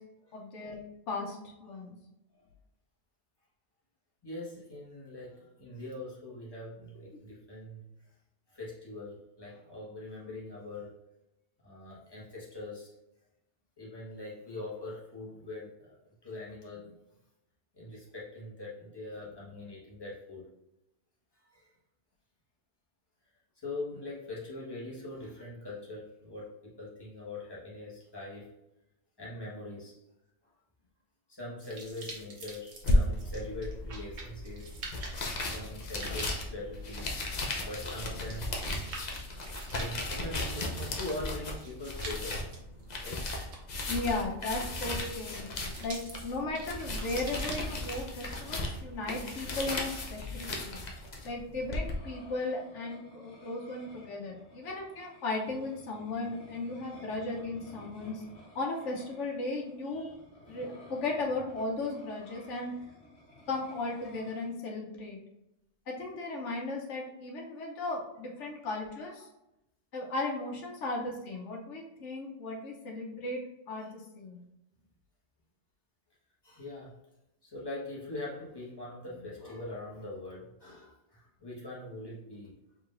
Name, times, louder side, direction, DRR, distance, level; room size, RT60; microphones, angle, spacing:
voice 1, 0.3-0.8 1.1-1.9 43.9-46.0 46.2-50.8 51.2-58.2 58.5-60.1 60.5-62.7 63.5-65.2 65.9-69.3 69.9-73.4 73.7-73.9 74.2-74.4, left 2 dB, 85° left, -1 dB, 1.1 m, -36 dB
voice 2, 4.2-7.9 8.5-10.9 11.6-12.9 13.8-17.0 17.7-20.5 21.4-21.7 23.5-28.5 29.2-30.0 31.3-34.6 35.5-38.6 39.6-42.4 43.0-43.2 45.1-45.2 73.8-73.9 76.4-76.9 77.4-82.5, left 2 dB, 20° left, -6 dB, 1.4 m, -42 dB
sound 1, 31.6-48.6, right 3 dB, 70° right, 1.2 m, -48 dB
sound 2, 32.8-51.9, left 1 dB, 45° left, 0.7 m, -35 dB
sound 3, 51.8-64.5, left 1 dB, 60° left, 1.5 m, -54 dB
4.9 x 3.5 x 2.5 m, 0.87 s
omnidirectional pair, 1.2 m